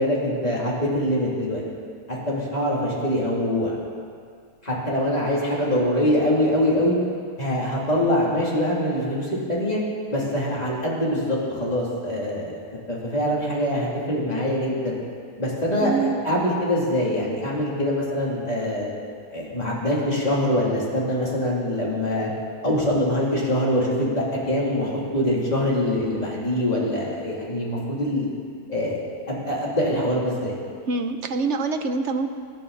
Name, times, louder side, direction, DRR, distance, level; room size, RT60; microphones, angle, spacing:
voice 1, 0.0-1.6 2.1-3.8 4.6-7.0 7.4-9.8 10.1-12.6 12.9-14.9 15.4-18.9 19.3-22.3 22.6-28.3 28.7-29.0 29.3-30.6, left 1 dB, 25° left, -5 dB, 3.3 m, -24 dB
voice 2, 15.8-16.1 30.9-32.3, right 4 dB, 50° right, 7 dB, 1.0 m, -25 dB
24.0 x 10.5 x 4.2 m, 2.2 s
omnidirectional pair, 1.8 m